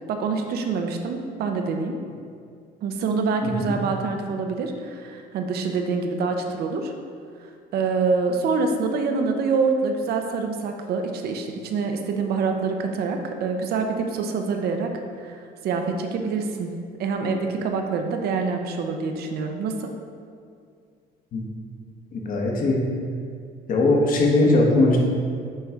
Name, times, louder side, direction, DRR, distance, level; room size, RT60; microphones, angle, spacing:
voice 1, 0.1-1.9 2.8-6.9 7.7-14.9 15.2-16.7 17.0-19.9, right 4 dB, 70° right, 4 dB, 0.7 m, -26 dB
voice 2, 3.4-3.7 21.3-21.4 22.1-22.8 23.7-25.0, left 2 dB, 55° left, -1 dB, 1.2 m, -20 dB
8.8 x 3.2 x 3.6 m, 2.2 s
cardioid pair, 110°, 17 cm